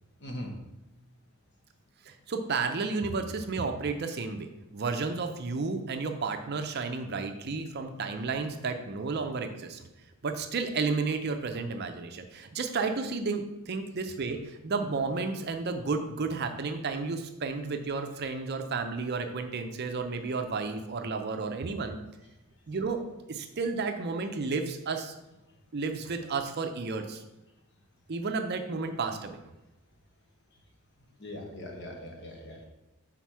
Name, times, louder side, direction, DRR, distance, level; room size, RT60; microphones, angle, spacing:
voice 1, 0.2-0.5 31.2-32.7, left 1 dB, 50° left, 1 dB, 1.2 m, -40 dB
voice 2, 2.1-9.8 10.2-22.0 22.7-23.0 23.3-25.1 25.7-27.2 28.1-29.4, right 4 dB, 50° right, 6 dB, 0.5 m, -32 dB
5.8 x 4.1 x 4.6 m, 0.96 s
head